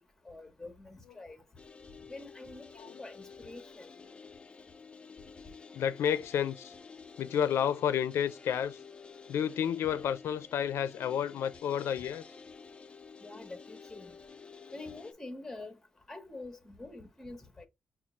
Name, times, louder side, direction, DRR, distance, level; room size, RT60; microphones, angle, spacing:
voice 1, 0.2-1.4 2.1-3.9 13.2-14.1 14.7-15.7 16.1-17.7, left 2 dB, 10° left, 0.8 m, -46 dB
sound 1, 1.6-15.1, left 5 dB, 25° left, 0.3 m, -51 dB
voice 2, 5.7-6.7 7.2-8.8 9.3-12.2, left 9 dB, 90° left, 0.4 m, -31 dB
5.6 x 2.3 x 2.9 m
wide cardioid pair, 145°, 4 cm